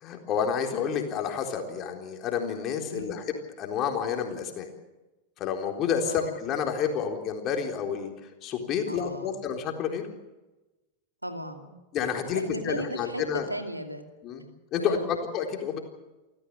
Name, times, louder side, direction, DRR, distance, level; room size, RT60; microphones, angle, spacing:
voice 1, 0.0-4.7 5.4-8.1 8.4-10.0 11.9-13.5 14.2-14.4 14.7-15.8, left 7 dB, 35° left, 3 dB, 3.9 m, -29 dB
voice 2, 8.9-9.3 11.2-11.8 12.3-14.0 14.8-15.1, equal, 85° right, 6 dB, 2.6 m, -35 dB
28.0 x 14.5 x 7.9 m, 1.1 s
figure-of-eight pair, 90°, 0 cm